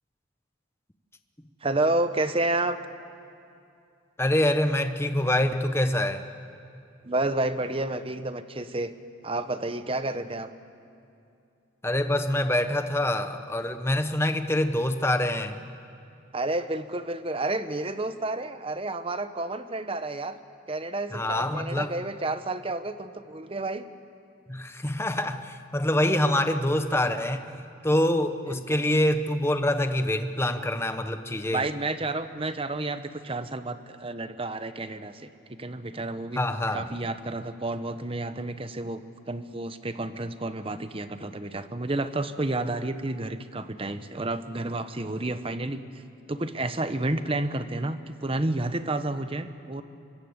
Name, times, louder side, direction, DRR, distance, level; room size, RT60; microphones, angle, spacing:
voice 1, 1.6-2.8 7.0-8.9 9.2-10.5 16.3-20.4 20.7-23.9 28.5-28.8 31.5-36.4 36.7-46.0 46.3-49.8, right 2 dB, 25° right, 11 dB, 0.9 m, -30 dB
voice 2, 4.2-6.3 11.8-15.6 21.1-21.9 24.5-31.6 36.4-36.8, left 1 dB, 10° left, 8 dB, 1.0 m, -25 dB
24.5 x 23.5 x 8.1 m, 2.5 s
head